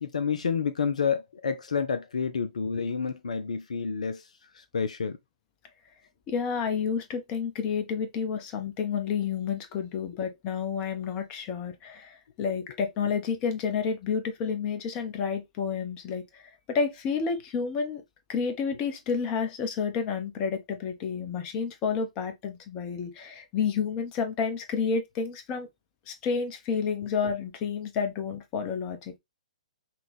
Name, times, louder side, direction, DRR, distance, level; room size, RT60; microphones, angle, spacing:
voice 1, 0.0-4.3 4.5-5.2, left 6 dB, 65° left, 0.6 m, -29 dB
voice 2, 6.3-18.0 18.3-25.7 26.1-29.1, left 6 dB, 25° left, 1.0 m, -30 dB
5.8 x 2.4 x 3.4 m
figure-of-eight pair, 120°, 4 cm